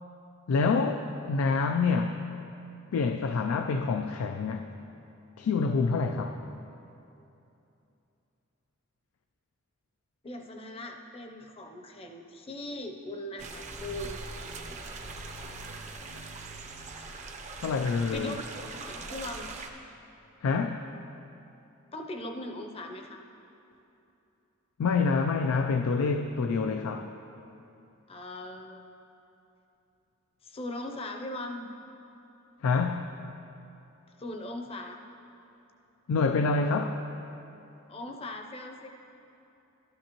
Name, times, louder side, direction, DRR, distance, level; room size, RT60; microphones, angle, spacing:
voice 1, 0.5-2.3 2.9-4.7 5.4-6.4 17.6-18.4 20.4-20.9 24.8-27.1 32.6-33.2 36.1-37.0, left 4 dB, 85° left, 5 dB, 0.4 m, -27 dB
voice 2, 10.2-14.2 18.1-18.4 19.1-19.5 21.9-23.2 28.1-28.8 30.4-31.7 34.2-35.0 37.9-38.9, left 1 dB, 30° left, 3 dB, 0.6 m, -39 dB
sound 1, 13.4-19.7, right 3 dB, 35° right, 0.6 m, -41 dB
12.5 x 10.0 x 3.0 m, 2.9 s
head